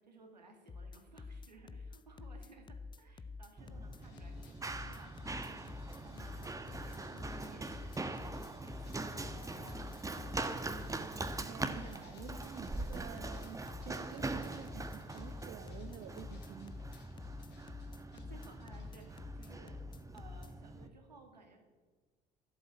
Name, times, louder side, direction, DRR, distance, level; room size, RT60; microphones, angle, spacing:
voice 1, 0.0-5.6 6.0-8.5 8.8-10.8 17.5-17.8 18.1-19.8 20.1-21.6, right 2 dB, 85° right, 3 dB, 2.3 m, -59 dB
sound 1, 0.7-20.5, left 4 dB, 20° left, 0.6 m, -48 dB
Run, 3.6-20.9, right 2 dB, 15° right, 1.4 m, -43 dB
sound 2, 4.0-19.5, left 5 dB, 55° left, 3.3 m, -63 dB
voice 2, 11.5-16.8, right 9 dB, 50° right, 9 dB, 1.0 m, -50 dB
16.5 x 12.0 x 7.4 m, 1.4 s
figure-of-eight pair, 50°, 21 cm